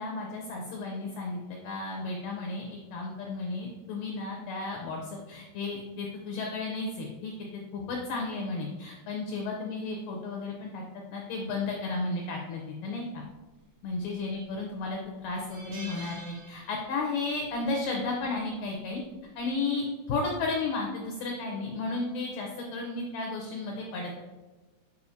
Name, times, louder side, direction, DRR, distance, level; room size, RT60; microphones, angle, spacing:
voice 1, 0.0-7.3 7.7-10.8 11.1-13.2 13.8-19.0 19.4-24.2, left 3 dB, 80° left, 0 dB, 1.9 m, -33 dB
sound 1, 14.1-14.5 14.8-14.9 15.3-17.2 17.4-17.7 18.9-19.2, right 3 dB, 75° right, 3.5 m, -47 dB
8.3 x 4.9 x 2.7 m, 1.2 s
omnidirectional pair, 4.8 m